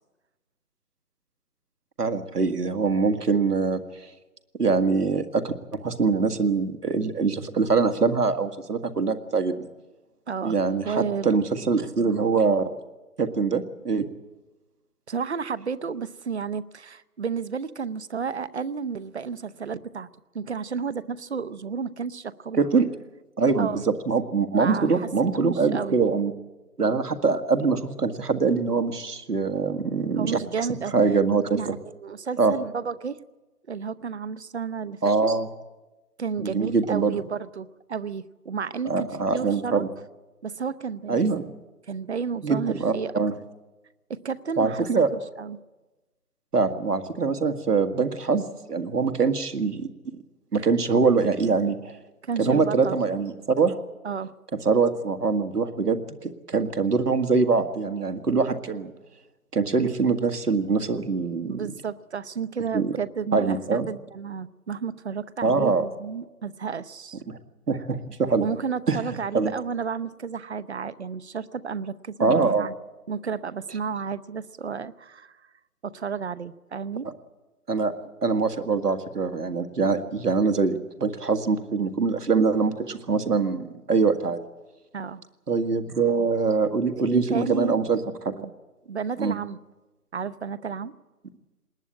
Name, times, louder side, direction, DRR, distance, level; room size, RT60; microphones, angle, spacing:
voice 1, 2.0-3.8 4.6-9.7 10.4-12.7 13.2-14.1 22.5-22.9 23.4-26.3 26.8-30.4 30.9-31.7 32.4-32.5 35.0-35.5 36.4-37.2 38.9-39.9 41.1-41.5 42.4-43.3 44.6-45.1 46.5-49.9 50.5-51.9 52.4-53.8 54.7-58.9 59.5-61.6 62.7-62.9 63.3-63.9 65.4-65.9 67.3-67.4 67.7-68.5 68.9-69.0 69.3-69.5 72.2-72.7 77.7-77.9 78.2-84.4 85.5-88.0 88.2-88.3 89.2-89.3, right 4 dB, 90° right, 8 dB, 1.8 m, -23 dB
voice 2, 10.8-11.4 15.1-20.1 20.3-22.6 23.6-23.9 24.5-26.0 30.2-30.9 31.5-31.8 32.0-33.2 33.7-35.3 36.2-39.8 40.4-41.4 41.9-43.2 44.1-45.6 52.2-53.0 54.0-54.3 61.5-67.2 68.4-72.7 73.1-75.4 75.8-77.1 84.9-85.2 87.1-87.8 88.4-88.5 88.9-89.6 90.1-90.9, right 6 dB, 45° right, 16 dB, 0.8 m, -32 dB
20.5 x 19.5 x 8.8 m, 1.1 s
figure-of-eight pair, 160°, 45 cm